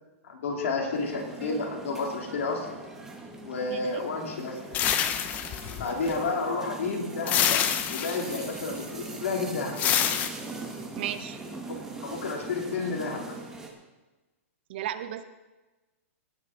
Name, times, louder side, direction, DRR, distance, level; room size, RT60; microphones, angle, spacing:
voice 1, 0.2-2.7 3.4-4.6 5.8-7.6 7.9-9.7 12.0-13.3, left 3 dB, 65° left, 0 dB, 3.4 m, -31 dB
sound 1, 0.9-13.7, right 3 dB, 5° right, 1.2 m, -41 dB
voice 2, 3.7-4.0 11.0-11.4 14.7-15.2, right 11 dB, 45° right, 12 dB, 0.6 m, -34 dB
sound 2, 4.7-6.2 7.3-8.5 9.8-10.3, left 10 dB, 20° left, 0.6 m, -26 dB
18.5 x 6.4 x 5.2 m, 1.2 s
hypercardioid pair, 160°, 8 cm